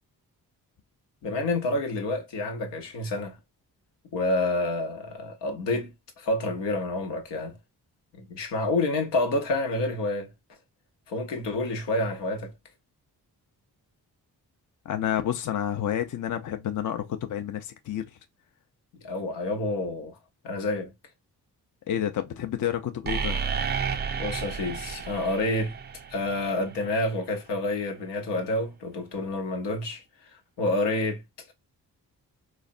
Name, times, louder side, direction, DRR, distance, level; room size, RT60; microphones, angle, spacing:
voice 1, 1.2-3.4 4.1-7.6 8.1-10.3 11.1-12.5 19.0-20.2 20.4-20.9 24.2-25.7 26.1-31.2, left 2 dB, 80° left, 0.8 m, -28 dB
voice 2, 14.9-18.0 21.9-23.4, left 10 dB, 50° left, 0.5 m, -29 dB
sound 1, 23.1-26.9, right 6 dB, 25° right, 0.3 m, -32 dB
3.2 x 2.0 x 2.4 m
supercardioid pair, 40°, 42 cm